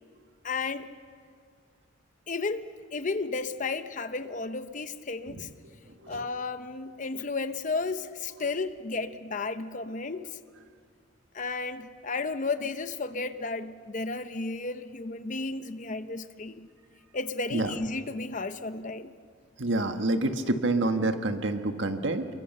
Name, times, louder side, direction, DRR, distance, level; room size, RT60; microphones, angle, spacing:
voice 1, 0.4-0.9 2.3-5.5 6.1-10.3 11.3-16.7 17.1-19.1, left 3 dB, 40° left, 11 dB, 0.8 m, -33 dB
voice 2, 19.6-22.3, right 2 dB, 70° right, 6 dB, 1.5 m, -27 dB
28.5 x 22.5 x 6.7 m, 2.1 s
head